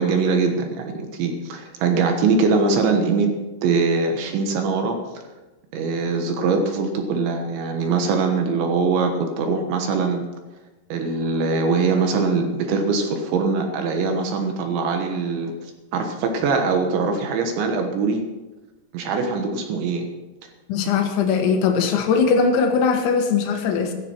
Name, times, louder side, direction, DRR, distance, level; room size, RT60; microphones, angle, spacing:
voice 1, 0.0-3.3 3.6-5.0 5.7-10.2 10.9-18.2 18.9-20.1, right 4 dB, 70° right, 4 dB, 3.4 m, -22 dB
voice 2, 20.7-23.9, left 5 dB, 70° left, 4 dB, 3.7 m, -20 dB
16.0 x 14.0 x 4.6 m, 1.1 s
omnidirectional pair, 5.7 m